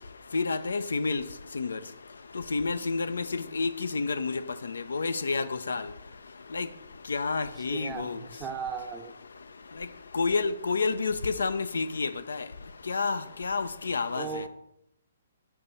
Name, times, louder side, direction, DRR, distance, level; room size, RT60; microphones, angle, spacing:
voice 1, 0.3-1.2 1.5-1.8 2.5-5.8 6.5-6.7 7.1-8.2 10.1-12.4 12.9-14.4, left 4 dB, 75° left, 0.4 m, -29 dB
voice 2, 7.7-9.1 14.2-14.5, right 6 dB, 15° right, 0.6 m, -37 dB
6.5 x 2.9 x 5.4 m
figure-of-eight pair, 130°, 0 cm